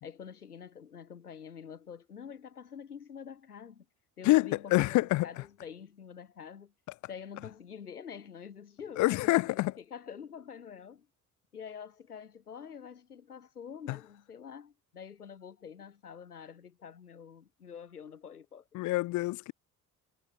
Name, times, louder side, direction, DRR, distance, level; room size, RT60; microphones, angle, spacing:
voice 1, 0.0-3.9 4.2-6.7 7.1-11.1 11.5-18.7, left 7 dB, 90° left, 2.5 m, -46 dB
voice 2, 4.2-5.3 9.0-9.7 13.9-14.0 18.7-19.5, left 19 dB, 45° left, 0.4 m, -26 dB
figure-of-eight pair, 45°, 44 cm